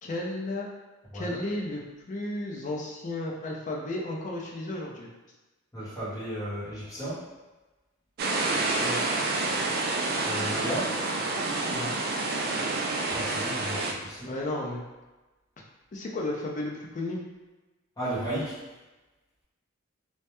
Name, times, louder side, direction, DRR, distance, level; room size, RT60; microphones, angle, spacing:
voice 1, 0.0-0.7 1.1-1.8 2.1-5.1 8.8-9.0 11.7-11.9 14.2-14.8 15.9-17.2, left 1 dB, 40° left, -2 dB, 0.4 m, -33 dB
voice 2, 1.1-1.4 5.7-7.2 10.2-10.9 13.1-14.3 18.0-18.6, right 1 dB, 20° left, -9 dB, 0.8 m, -34 dB
sound 1, 8.2-13.9, right 2 dB, 50° right, 0.3 m, -28 dB
2.2 x 2.1 x 2.9 m, 1.1 s
head